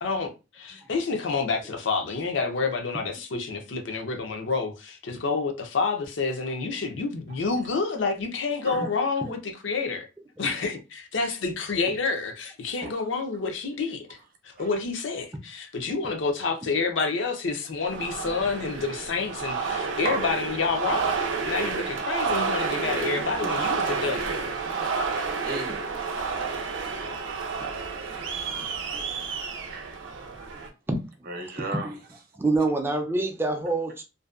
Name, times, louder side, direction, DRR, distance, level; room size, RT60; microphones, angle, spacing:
voice 1, 0.0-10.1 10.4-14.1 14.4-24.4, left 4 dB, 75° left, 0.5 m, -29 dB
sound 1, 17.9-30.7, right 5 dB, 90° right, 0.5 m, -30 dB
voice 2, 23.4-23.7 25.4-25.8 27.8-28.0 29.7-30.0 31.3-32.0, right 3 dB, 50° right, 0.6 m, -34 dB
voice 3, 32.4-34.0, right 2 dB, 10° right, 0.4 m, -26 dB
2.6 x 2.1 x 2.3 m
head